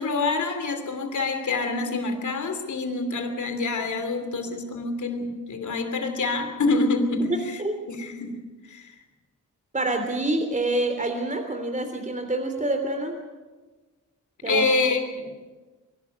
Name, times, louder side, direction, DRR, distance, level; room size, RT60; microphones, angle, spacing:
voice 1, 0.0-7.6 7.9-8.4 8.7-8.9 14.5-15.4, left 3 dB, 70° left, 7 dB, 2.9 m, -26 dB
voice 2, 7.3-7.8 9.7-13.1 14.4-14.6, right 2 dB, 25° right, 5 dB, 3.3 m, -26 dB
23.5 x 12.0 x 9.6 m, 1.3 s
cardioid pair, 75°, 31 cm